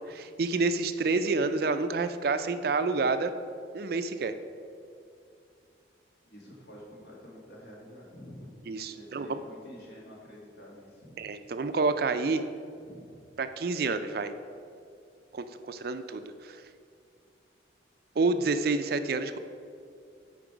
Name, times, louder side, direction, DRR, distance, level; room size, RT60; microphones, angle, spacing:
voice 1, 0.0-3.3 3.7-4.3 8.7-9.4 11.2-12.4 13.4-14.3 15.3-16.6 18.2-19.4, right 3 dB, 50° right, 10 dB, 0.4 m, -29 dB
voice 2, 6.2-8.6 8.9-11.2 12.8-13.3, equal, 60° left, -4 dB, 2.0 m, -49 dB
8.9 x 5.2 x 4.9 m, 2.5 s
head